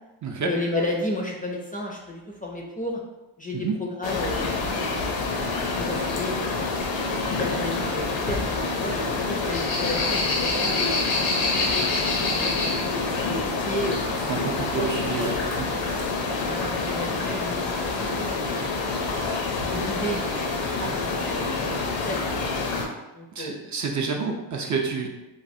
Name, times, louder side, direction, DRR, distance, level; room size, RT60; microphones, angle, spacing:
voice 1, 0.4-3.0 3.4-4.7 5.8-6.6 7.2-14.0 14.6-14.9 15.2-15.6 16.4-19.3 19.7-22.5 23.1-23.7, left 1 dB, 20° left, -1 dB, 0.4 m, -33 dB
sound 1, 4.0-22.9, left 3 dB, 80° left, 0.6 m, -26 dB
voice 2, 14.3-15.7 23.3-25.1, right 5 dB, 40° right, 2 dB, 0.4 m, -29 dB
3.1 x 2.4 x 2.6 m, 1.0 s
cardioid pair, 85°, 45 cm